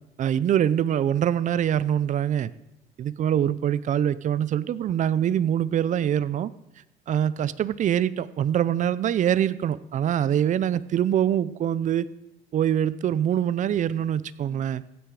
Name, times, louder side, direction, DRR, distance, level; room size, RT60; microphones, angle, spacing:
voice 1, 0.2-2.5 3.0-6.5 7.1-12.1 12.5-14.8, right 10 dB, 45° right, 17 dB, 0.5 m, -24 dB
15.5 x 10.0 x 4.8 m, 0.84 s
cardioid pair, 130°, 18 cm